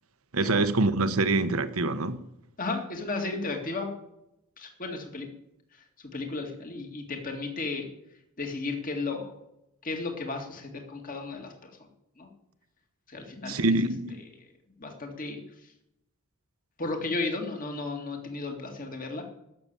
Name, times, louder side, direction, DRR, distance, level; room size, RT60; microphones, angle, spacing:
voice 1, 0.3-2.2 13.5-14.2, right 2 dB, 80° right, 1.1 m, -25 dB
voice 2, 2.6-3.9 4.6-5.3 6.0-7.9 8.4-9.3 9.8-11.7 12.2-12.3 13.1-13.8 14.8-15.4 16.8-19.2, left 3 dB, 40° left, 2.2 m, -34 dB
14.0 x 6.8 x 9.0 m
head